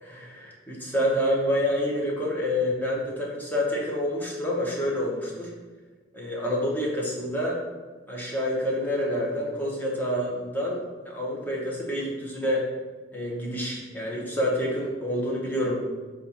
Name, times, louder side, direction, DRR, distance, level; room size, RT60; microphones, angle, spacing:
voice 1, 0.0-5.5 6.1-7.6 8.1-10.8 11.1-12.6 13.1-15.8, equal, 10° left, -4 dB, 0.8 m, -28 dB
4.3 x 2.4 x 4.1 m, 1.4 s
head